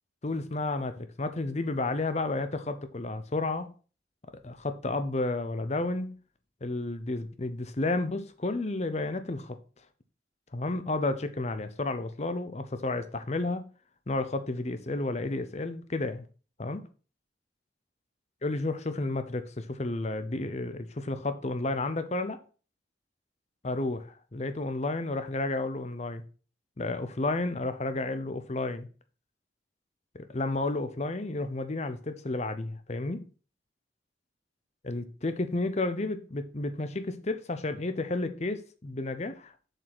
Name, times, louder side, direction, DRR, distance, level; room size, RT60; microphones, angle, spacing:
voice 1, 0.2-3.7 4.4-6.2 6.6-9.6 10.5-13.7 14.1-16.2 16.6-16.8 18.4-22.4 23.6-26.2 26.8-28.9 30.1-33.3 34.8-39.5, left 2 dB, 35° left, 0.7 m, -31 dB
7.4 x 5.5 x 6.0 m
head